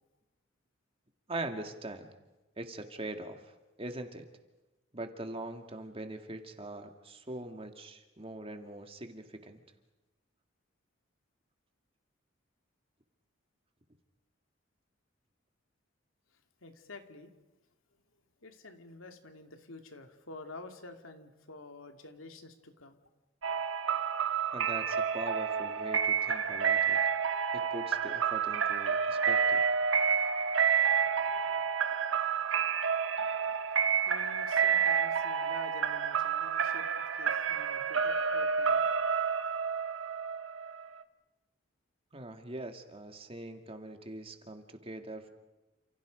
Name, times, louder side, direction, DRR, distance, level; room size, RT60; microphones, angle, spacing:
voice 1, 1.3-2.1 2.6-4.3 4.9-9.6 24.5-27.0 27.5-29.6 42.1-45.3, right 2 dB, 30° right, 5 dB, 2.2 m, -42 dB
voice 2, 16.6-17.3 18.4-23.0 34.1-38.9, left 2 dB, 80° left, 6 dB, 2.4 m, -49 dB
sound 1, 23.4-41.0, right 7 dB, 75° right, 1.3 m, -29 dB
29.5 x 28.0 x 5.2 m, 1.0 s
head